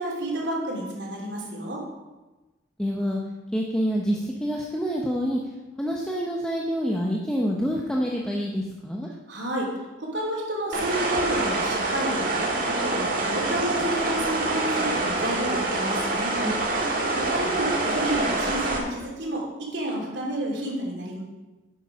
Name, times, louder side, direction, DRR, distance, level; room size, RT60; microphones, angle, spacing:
voice 1, 0.0-1.8 9.3-9.7 10.0-12.3 12.6-16.4 17.2-21.2, right 1 dB, 80° right, -4 dB, 3.1 m, -30 dB
voice 2, 2.8-3.2 3.5-5.4 5.8-9.1 16.4-17.1, equal, 5° left, -2 dB, 0.9 m, -27 dB
sound 1, 10.7-18.8, right 2 dB, 50° right, 1.8 m, -26 dB
10.5 x 7.9 x 5.2 m, 1.1 s
head